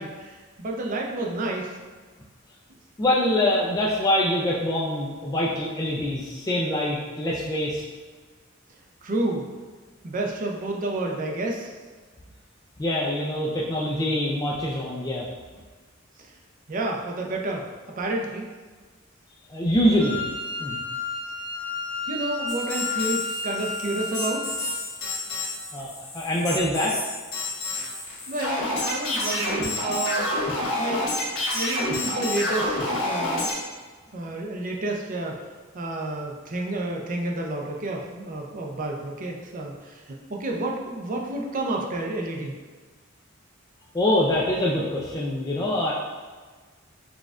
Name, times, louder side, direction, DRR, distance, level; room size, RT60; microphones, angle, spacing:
voice 1, 0.0-1.8 9.0-9.5 10.0-11.7 16.2-16.3 16.7-17.7 18.0-18.5 22.1-24.5 27.6-27.8 28.3-30.3 30.8-31.1 31.5-32.8 33.0-33.5 34.1-35.4 35.7-42.5, right 2 dB, 40° right, 0 dB, 0.5 m, -30 dB
voice 2, 3.0-7.8 12.8-15.3 19.5-20.2 20.6-20.8 25.7-26.9 43.9-45.9, left 1 dB, 15° left, -5 dB, 0.3 m, -24 dB
Wind instrument woodwind instrument, 20.0-24.8, left 3 dB, 85° right, 0.8 m, -32 dB
sound 1, 22.5-33.5, left 1 dB, 70° left, 1.3 m, -28 dB
6.0 x 2.3 x 2.4 m, 1.4 s
head